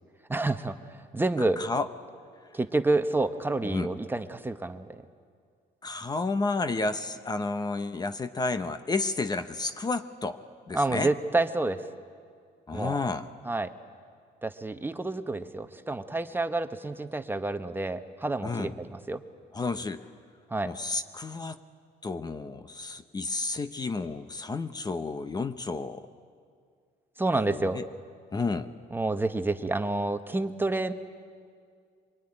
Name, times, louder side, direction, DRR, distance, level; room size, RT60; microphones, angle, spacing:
voice 1, 0.3-0.8 1.1-1.6 2.5-5.0 10.7-11.8 12.7-13.0 13.4-13.7 14.4-19.2 20.5-20.7 27.2-27.8 28.9-30.9, right 2 dB, 10° right, 9 dB, 1.0 m, -28 dB
voice 2, 1.6-1.9 3.6-3.9 5.8-10.4 10.7-11.1 12.7-13.3 18.4-18.7 19.5-20.0 20.7-21.6 22.0-26.0 27.5-27.9 28.3-28.7, left 3 dB, 25° left, 10 dB, 0.9 m, -31 dB
24.5 x 21.5 x 10.0 m, 2.2 s
cardioid pair, 110°, 17 cm